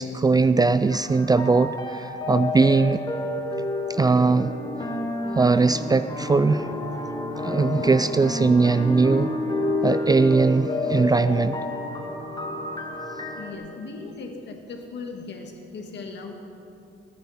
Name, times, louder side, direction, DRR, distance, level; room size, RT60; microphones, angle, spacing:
voice 1, 0.0-3.0 3.9-4.5 5.4-6.7 7.4-9.3 9.8-11.6, right 4 dB, 20° right, 12 dB, 0.3 m, -20 dB
sound 1, 0.9-13.5, left 2 dB, 20° left, 1.5 m, -30 dB
voice 2, 13.4-16.3, left 4 dB, 60° left, 3 dB, 1.8 m, -38 dB
19.0 x 9.7 x 4.3 m, 2.7 s
cardioid pair, 90°, 20 cm